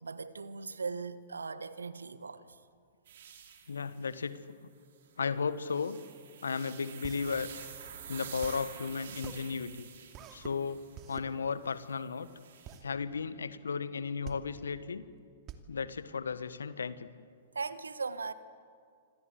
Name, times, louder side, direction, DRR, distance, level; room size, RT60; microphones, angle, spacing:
voice 1, 0.0-2.6 17.5-18.3, right 4 dB, 75° right, 1.5 m, -39 dB
sound 1, 3.1-4.2 5.6-11.0 11.8-12.8, right 8 dB, 60° right, 4.2 m, -49 dB
voice 2, 3.7-4.4 5.2-6.0 6.4-7.5 8.1-9.9 10.3-10.8 11.1-12.3 12.8-15.0 15.7-17.1, left 5 dB, 75° left, 1.4 m, -34 dB
sound 2, 7.0-16.9, right 8 dB, 30° right, 2.6 m, -49 dB
27.5 x 26.5 x 8.0 m
figure-of-eight pair, 105°, 0 cm